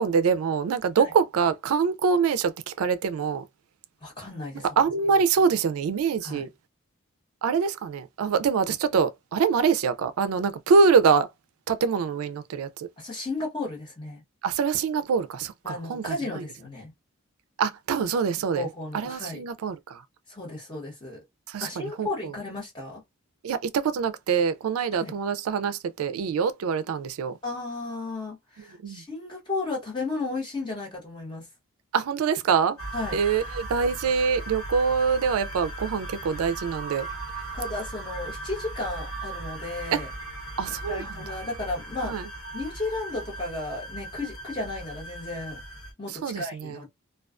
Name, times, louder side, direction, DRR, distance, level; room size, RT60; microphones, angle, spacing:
voice 1, 0.0-3.4 4.8-6.5 7.4-11.3 11.7-12.9 14.4-16.4 17.6-18.7 18.9-20.0 21.5-22.3 23.4-27.3 28.8-29.0 31.9-32.8 33.1-37.1 39.9-40.0 40.6-41.1 42.0-42.3 46.1-46.8, right 5 dB, 80° right, 0.3 m, -25 dB
voice 2, 4.0-4.7 6.2-6.4 13.0-14.2 15.6-16.9 18.5-19.4 20.3-21.2 21.6-23.0 25.0-25.2 27.4-31.5 32.9-33.2 37.5-40.1 40.9-42.1 42.5-45.6 46.0-46.9, left 2 dB, 20° left, 1.1 m, -34 dB
sound 1, 32.8-45.9, right 2 dB, 90° left, 1.3 m, -38 dB
2.3 x 2.3 x 2.4 m
head